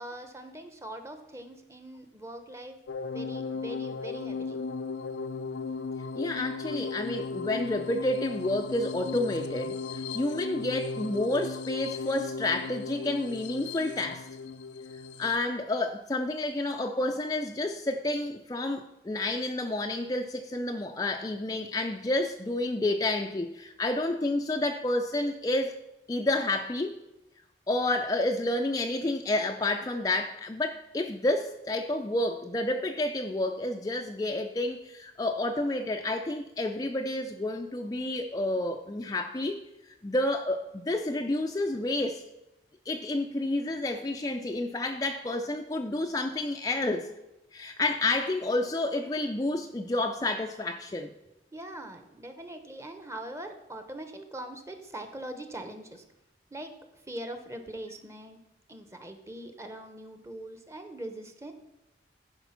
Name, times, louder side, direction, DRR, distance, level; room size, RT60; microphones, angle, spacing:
voice 1, 0.0-2.8 3.1-4.6 51.5-56.0 56.5-58.4 58.7-61.5, right 1 dB, 15° right, 7 dB, 0.9 m, -42 dB
sound 1, 2.9-15.4, left 4 dB, 80° left, 0.5 m, -36 dB
voice 2, 6.2-14.3 15.2-25.7 26.1-26.9 27.7-39.6 40.0-42.2 42.9-47.1 47.5-51.1, left 2 dB, 20° left, 4 dB, 0.4 m, -30 dB
11.5 x 5.1 x 5.7 m, 0.92 s
head